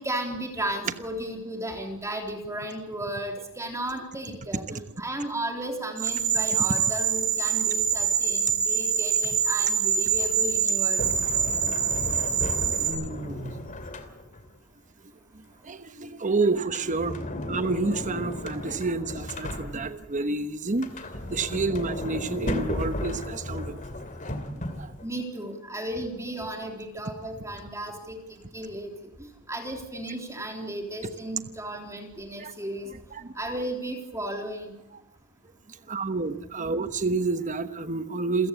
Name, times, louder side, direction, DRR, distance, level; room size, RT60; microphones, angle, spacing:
voice 1, 0.0-11.0 17.2-17.4 25.0-28.9 29.5-32.9 33.4-34.7, right 1 dB, 15° right, 3 dB, 3.6 m, -34 dB
sound 1, 6.0-12.9, right 7 dB, 80° right, 7.1 m, -25 dB
Sliding door, 11.0-14.5 16.6-20.1 20.7-25.1, left 1 dB, 35° left, 2.8 m, -34 dB
voice 2, 11.2-11.6 12.1-12.4 12.8-13.6 15.6-17.1 17.5-20.9 21.3-23.8 24.3-24.9 32.4-32.5 33.1-33.3 35.9-38.5, right 3 dB, 35° right, 10 dB, 1.1 m, -29 dB
28.5 x 16.0 x 8.3 m, 0.85 s
head